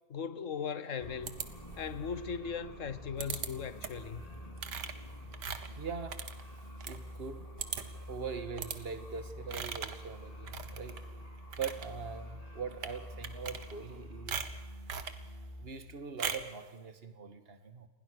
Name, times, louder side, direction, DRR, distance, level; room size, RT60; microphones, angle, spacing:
voice 1, 0.1-1.4 1.7-4.2, left 6 dB, 50° left, 1.4 m, -38 dB
sound 1, 1.0-15.7, equal, 20° left, 4.4 m, -47 dB
sound 2, 1.3-2.0 3.2-3.5 3.8-4.1 4.6-7.0 7.3-7.4 7.6-8.0 8.6-8.8 9.5-10.0 10.5-11.0 11.4-11.9 12.7-13.0 13.2-14.0 14.3-15.2 16.2-16.6, right 7 dB, 75° right, 2.0 m, -39 dB
voice 2, 5.8-6.3 6.9-7.5 7.7-11.0 11.6-14.5 15.6-17.9, right 5 dB, 35° right, 2.0 m, -42 dB
28.5 x 21.0 x 6.6 m
omnidirectional pair, 1.9 m